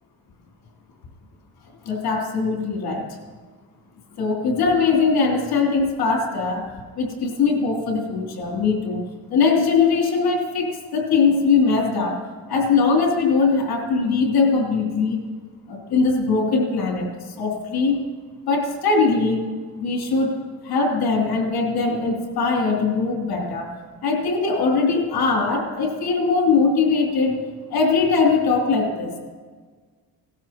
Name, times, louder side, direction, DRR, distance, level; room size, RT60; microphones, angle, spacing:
voice 1, 1.9-3.0 4.2-6.6 7.0-9.0 9.3-12.2 12.5-15.2 15.7-17.1 17.4-17.9 18.4-19.5 19.8-20.3 20.6-23.7 24.0-27.4 27.7-29.1, left 4 dB, 90° left, 1 dB, 3.0 m, -21 dB
18.0 x 13.5 x 2.9 m, 1.5 s
cardioid pair, 175°, 37 cm